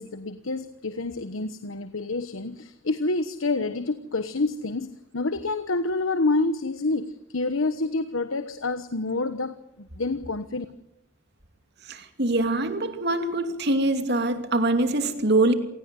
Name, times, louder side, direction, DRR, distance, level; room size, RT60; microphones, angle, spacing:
voice 1, 0.0-10.6, left 3 dB, 85° left, 1.2 m, -28 dB
voice 2, 11.9-15.5, right 2 dB, 55° right, 2.8 m, -24 dB
27.0 x 18.0 x 7.8 m
head